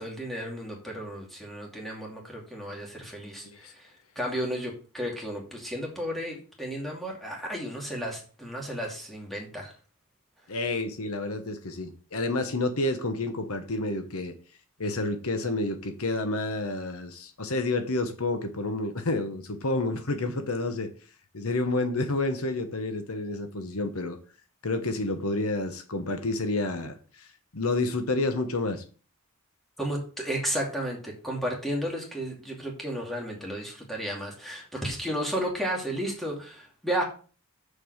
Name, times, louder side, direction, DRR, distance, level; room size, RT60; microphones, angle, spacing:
voice 1, 0.0-3.9 4.2-9.7 29.8-37.0, equal, ahead, -2 dB, 2.4 m, -33 dB
voice 2, 10.5-14.3 14.8-20.9 21.3-24.2 24.6-27.3 27.5-28.8, left 2 dB, 75° left, 7 dB, 1.1 m, -29 dB
6.7 x 5.5 x 6.5 m, 0.38 s
head